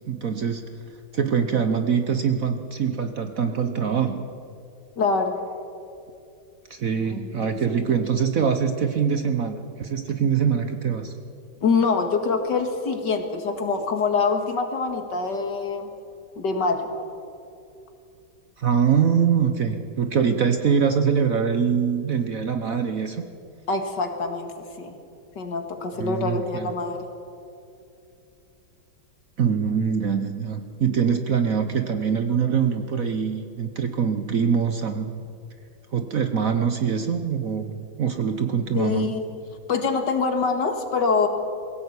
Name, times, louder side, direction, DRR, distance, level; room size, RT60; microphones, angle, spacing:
voice 1, 0.1-0.6 1.1-4.2 6.7-11.1 18.6-23.2 26.0-26.7 29.4-35.2 35.9-39.1, right 7 dB, 50° right, 8 dB, 1.2 m, -23 dB
voice 2, 5.0-5.4 7.1-7.6 7.9-8.0 11.6-15.9 16.4-16.9 23.7-24.5 24.8-25.0 25.4-27.0 38.7-39.2 39.7-41.3, left 4 dB, 60° left, 5 dB, 2.4 m, -25 dB
22.0 x 16.5 x 8.3 m, 2.6 s
omnidirectional pair, 2.2 m